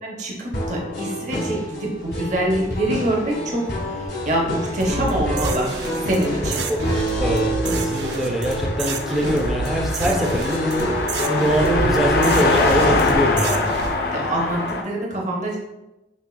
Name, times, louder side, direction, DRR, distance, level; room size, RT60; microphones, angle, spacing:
voice 1, 0.0-5.7 6.0-6.6 14.1-15.6, right 1 dB, 40° right, -2 dB, 0.7 m, -25 dB
sound 1, 0.5-13.2, equal, 75° left, 1.2 m, -27 dB
Car passing by, 4.7-14.8, left 3 dB, 60° left, 0.4 m, -25 dB
sound 2, 4.8-13.9, right 3 dB, 75° right, 0.3 m, -30 dB
voice 2, 7.2-10.9 11.3-13.7, equal, ahead, 0 dB, 0.4 m, -23 dB
5.3 x 2.4 x 2.2 m, 0.96 s
head